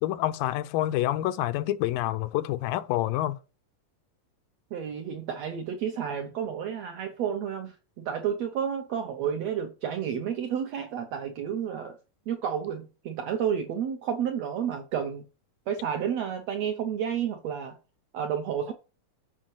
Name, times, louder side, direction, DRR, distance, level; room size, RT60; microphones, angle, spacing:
voice 1, 0.0-3.4, left 14 dB, 85° left, 2.4 m, -27 dB
voice 2, 4.7-12.0 12.3-15.2 15.7-17.7 18.1-18.7, right 8 dB, 70° right, 1.6 m, -31 dB
7.5 x 5.3 x 7.2 m
omnidirectional pair, 4.0 m